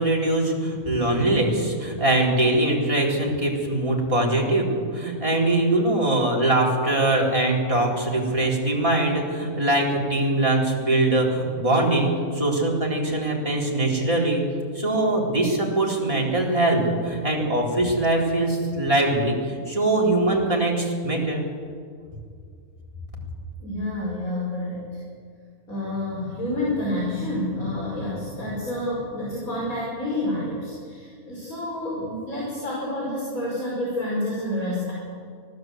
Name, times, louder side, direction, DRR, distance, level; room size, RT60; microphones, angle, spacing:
voice 1, 0.0-21.4, right 2 dB, 20° right, -3 dB, 4.2 m, -22 dB
voice 2, 0.9-1.2 18.7-18.8 23.6-24.9 25.7-34.9, left 1 dB, 65° left, -5 dB, 5.7 m, -29 dB
24.0 x 17.0 x 8.0 m, 2.1 s
omnidirectional pair, 1.6 m